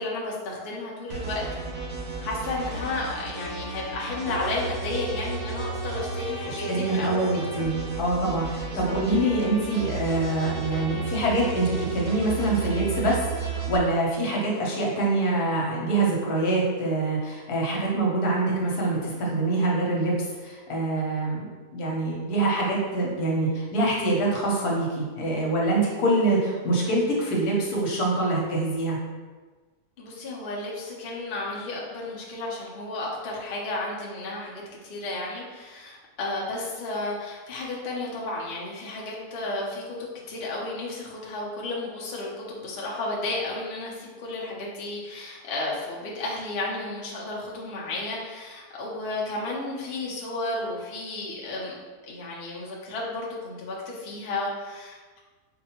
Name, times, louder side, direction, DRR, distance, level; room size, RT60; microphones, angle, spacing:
voice 1, 0.0-1.4 2.2-7.2 8.7-8.8 30.0-39.8 40.3-51.8 52.1-55.2, left 2 dB, 50° left, -4 dB, 0.8 m, -33 dB
sound 1, 1.1-13.8, right 4 dB, 80° right, 1.3 m, -33 dB
voice 2, 6.5-20.1 20.4-21.5 21.7-29.0, right 2 dB, 80° left, -3 dB, 1.4 m, -25 dB
4.6 x 2.5 x 2.8 m, 1.4 s
omnidirectional pair, 1.6 m